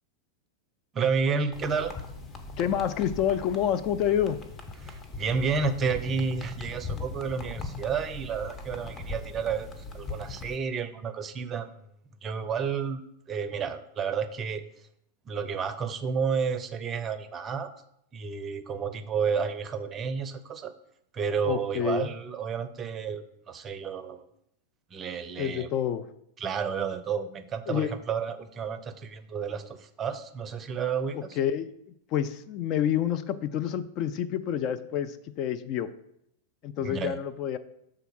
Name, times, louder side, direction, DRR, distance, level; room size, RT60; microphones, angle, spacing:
voice 1, 0.9-1.9 4.8-11.7 12.2-13.0 13.3-14.6 15.3-17.7 18.1-20.7 21.1-24.2 24.9-25.7 26.4-31.4 36.8-37.2, right 6 dB, 25° right, 11 dB, 0.5 m, -31 dB
sound 1, 1.5-10.6, left 3 dB, 25° left, 0.9 m, -40 dB
voice 2, 2.6-4.4 21.4-22.1 25.4-26.1 27.7-27.9 31.4-31.7 32.1-35.9 36.6-37.6, left 9 dB, 40° left, 11 dB, 0.4 m, -28 dB
6.7 x 3.8 x 6.1 m, 0.75 s
figure-of-eight pair, 90°, 0 cm